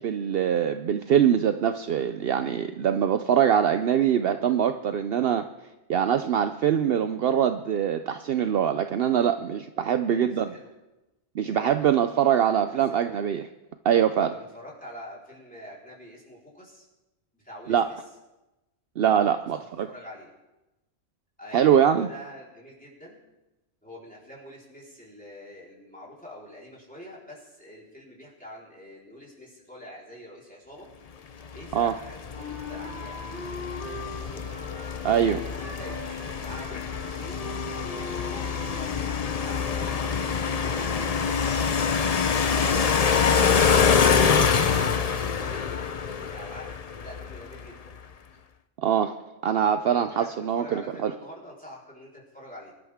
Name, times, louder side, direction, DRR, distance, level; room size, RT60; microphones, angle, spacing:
voice 1, 0.0-5.5 5.9-10.5 11.4-13.5 13.8-14.3 17.7-17.9 19.0-19.9 21.5-22.1 31.7-31.9 35.0-35.4 48.8-49.1 49.4-51.1, right 9 dB, 65° right, 9 dB, 0.8 m, -23 dB
voice 2, 10.0-10.7 11.5-11.9 12.1-13.1 14.3-16.9 17.3-18.0 19.5-20.3 21.4-23.2 23.8-30.9 31.5-33.1 35.2-37.5 38.1-40.1 40.5-41.8 42.3-46.7 47.0-47.9 49.9-52.7, equal, 5° left, -5 dB, 4.1 m, -45 dB
sound 1, 31.5-47.7, left 6 dB, 40° left, 0.6 m, -25 dB
Wind instrument woodwind instrument, 32.4-39.9, left 2 dB, 85° right, 5.5 m, -40 dB
24.5 x 12.0 x 3.6 m, 1.0 s
omnidirectional pair, 1.2 m